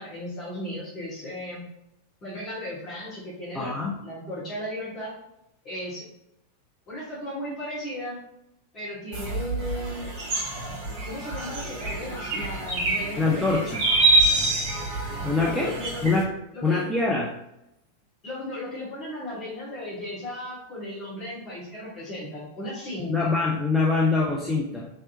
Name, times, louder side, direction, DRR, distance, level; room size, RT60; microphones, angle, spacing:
voice 1, 0.0-1.6 2.2-3.7 4.0-5.1 5.6-6.1 6.9-8.2 8.7-10.1 11.0-13.7 15.3-16.1 16.5-16.8 18.2-23.3, left 1 dB, 30° left, -8 dB, 1.5 m, -35 dB
voice 2, 3.5-3.9 13.2-13.9 15.2-15.7 16.0-16.3 16.6-17.3 23.1-24.9, left 3 dB, 5° left, -4 dB, 0.4 m, -24 dB
sound 1, 9.1-16.2, right 2 dB, 40° right, 1.1 m, -26 dB
3.2 x 2.8 x 2.6 m, 0.84 s
figure-of-eight pair, 90°, 0 cm